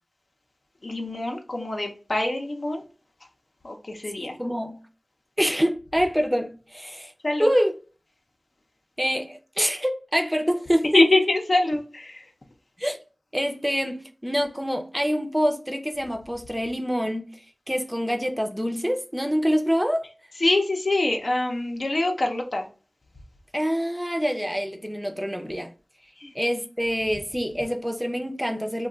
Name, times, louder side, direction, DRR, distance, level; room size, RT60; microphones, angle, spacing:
voice 1, 0.8-2.8 3.6-4.4 7.2-7.5 10.9-12.3 20.4-22.7 26.2-26.3, left 2 dB, 75° left, 0.6 m, -24 dB
voice 2, 4.2-4.8 5.4-7.1 7.4-7.7 9.0-10.9 12.8-13.0 13.3-17.3 17.7-20.0 23.5-25.7 26.3-28.9, equal, 5° right, 0.5 m, -26 dB
2.4 x 2.3 x 3.7 m
wide cardioid pair, 50°, 0 cm